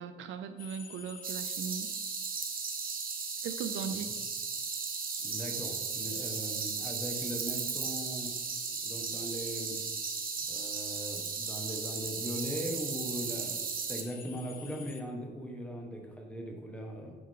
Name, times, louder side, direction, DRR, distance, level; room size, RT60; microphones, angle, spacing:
voice 1, 0.0-1.9 3.4-4.1, right 7 dB, 75° right, 9 dB, 0.5 m, -38 dB
sound 1, 0.6-15.0, left 6 dB, 45° left, 0.9 m, -48 dB
sound 2, 1.2-14.0, right 6 dB, 45° right, 0.9 m, -36 dB
voice 2, 5.2-8.3 8.8-9.8 10.4-17.2, equal, 5° left, 1 dB, 1.5 m, -39 dB
8.2 x 4.9 x 3.8 m, 1.3 s
cardioid pair, 90°, 20 cm